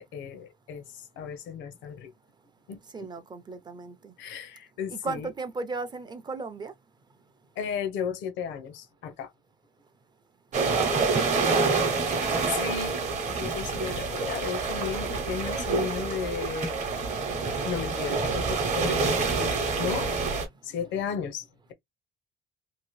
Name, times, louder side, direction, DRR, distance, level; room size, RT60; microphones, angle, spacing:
voice 1, 0.0-2.1 2.7-3.1 4.2-5.3 7.6-9.3 12.5-16.7 17.6-20.1 20.6-21.7, left 7 dB, 85° left, 0.8 m, -34 dB
voice 2, 2.9-4.1 4.9-6.7 10.6-12.0, right 4 dB, 25° right, 0.4 m, -35 dB
sound 1, 10.5-20.5, right 4 dB, 40° right, 0.8 m, -27 dB
2.8 x 2.6 x 3.1 m
cardioid pair, 155°, 19 cm